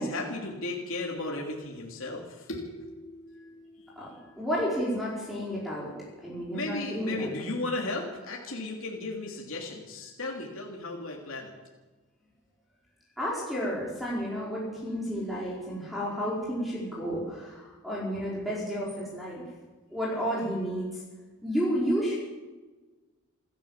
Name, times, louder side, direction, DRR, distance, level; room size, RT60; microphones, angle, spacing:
voice 1, 0.0-4.2 6.5-11.5, left 2 dB, 65° left, -1 dB, 3.2 m, -35 dB
voice 2, 4.4-5.9 6.2-7.3 13.2-19.4 19.9-21.0 21.4-22.1, equal, ahead, -6 dB, 5.0 m, -31 dB
28.0 x 12.5 x 7.5 m, 1.2 s
head